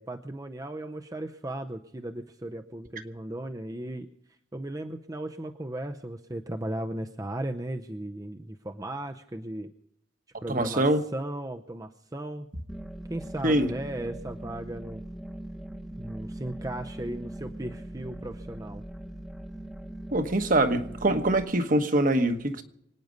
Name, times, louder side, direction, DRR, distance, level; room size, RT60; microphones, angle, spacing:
voice 1, 0.0-9.7 10.4-12.5 13.1-15.0 16.0-18.8, right 1 dB, 20° right, 0.6 m, -36 dB
voice 2, 10.5-11.0 13.4-13.7 20.1-22.6, right 1 dB, 45° right, 1.3 m, -24 dB
sound 1, 12.7-21.4, right 1 dB, ahead, 1.0 m, -41 dB
25.0 x 9.4 x 5.2 m
head